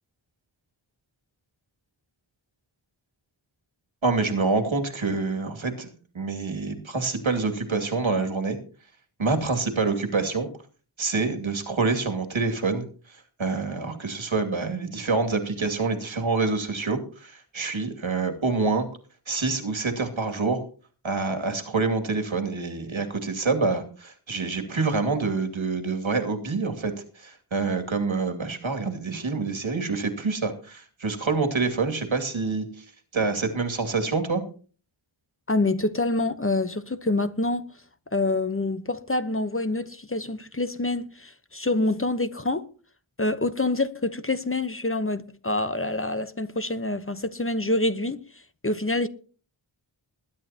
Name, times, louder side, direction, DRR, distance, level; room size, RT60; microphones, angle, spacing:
voice 1, 4.0-5.9 6.1-8.6 9.2-10.5 11.0-18.9 19.3-20.6 21.0-32.8 33.1-34.4, right 4 dB, 80° right, 2.5 m, -26 dB
voice 2, 35.5-37.7 38.1-42.7 43.2-48.2 48.6-49.1, left 2 dB, 25° left, 1.0 m, -26 dB
21.0 x 10.5 x 2.9 m
wide cardioid pair, 55°, 47 cm